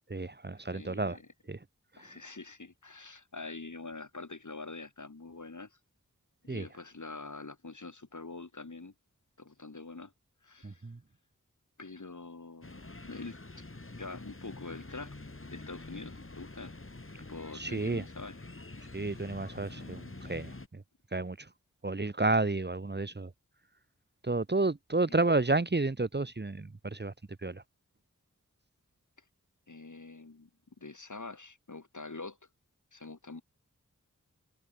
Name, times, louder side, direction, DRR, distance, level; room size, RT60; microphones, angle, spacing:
voice 1, 0.1-1.2 1.5-1.6 6.5-6.7 10.6-11.0 17.5-18.0 18.9-20.8 21.1-21.5 21.8-23.3 24.2-27.1 27.4-27.6, right 2 dB, 30° right, 1.1 m, -31 dB
voice 2, 0.7-1.3 2.0-5.8 6.4-8.9 9.4-10.1 10.4-10.9 11.8-13.7 14.0-15.2 15.5-16.7 17.2-18.4 25.1-25.2 29.7-30.5 30.8-32.4 32.9-33.4, left 3 dB, 65° left, 4.6 m, -45 dB
sound 1, 12.6-20.7, left 2 dB, 40° left, 3.2 m, -46 dB
wide cardioid pair, 50°, 32 cm